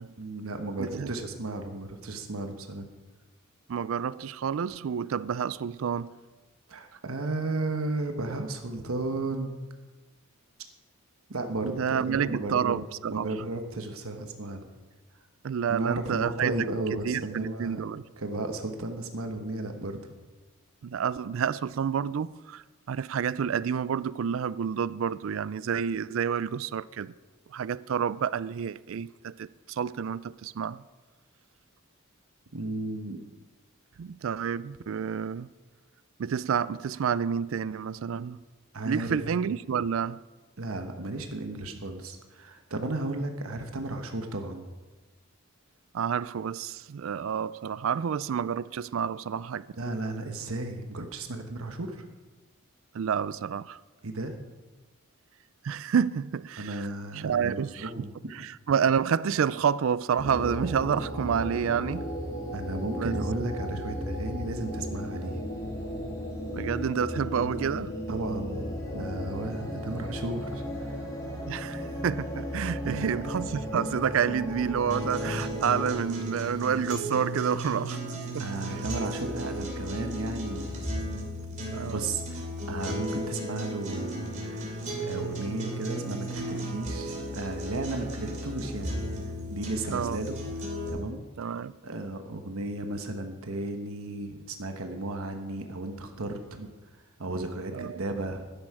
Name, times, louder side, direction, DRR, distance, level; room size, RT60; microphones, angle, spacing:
voice 1, 0.2-2.9 6.7-9.6 11.3-12.8 13.1-14.6 15.7-20.0 32.5-33.2 38.7-39.2 40.6-44.7 49.8-52.1 54.0-54.4 56.6-58.1 62.5-65.4 68.1-71.1 72.8-73.2 78.4-80.9 81.9-88.9 89.5-90.4 90.9-91.5 91.8-96.7 97.2-98.5, right 2 dB, 85° right, 1.2 m, -34 dB
voice 2, 0.8-1.1 3.7-6.1 11.6-13.3 15.4-16.5 17.1-18.0 20.8-27.1 27.5-30.8 34.0-35.5 36.2-38.4 38.9-40.2 45.9-49.7 52.9-53.8 55.6-56.9 57.1-57.9 58.3-62.1 63.0-63.2 66.5-67.9 71.5-78.0 78.3-78.4 81.7-82.0 89.9-90.2 91.4-91.7 97.7-98.0, right 7 dB, 65° right, 0.4 m, -29 dB
sound 1, 60.2-75.9, equal, 15° left, 2.3 m, -35 dB
sound 2, 74.9-90.9, equal, 35° right, 2.9 m, -35 dB
12.0 x 10.5 x 4.8 m
head